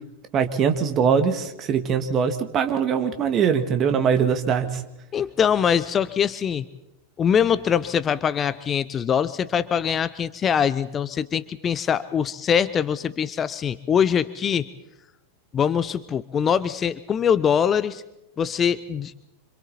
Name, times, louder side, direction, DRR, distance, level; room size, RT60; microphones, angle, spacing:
voice 1, 0.3-4.8, right 7 dB, 30° right, 7 dB, 2.1 m, -22 dB
voice 2, 5.1-6.7 7.2-14.7 15.5-18.0 18.4-19.1, left 8 dB, 25° left, 15 dB, 0.7 m, -23 dB
26.5 x 26.5 x 4.3 m, 0.89 s
figure-of-eight pair, 90°, 0 cm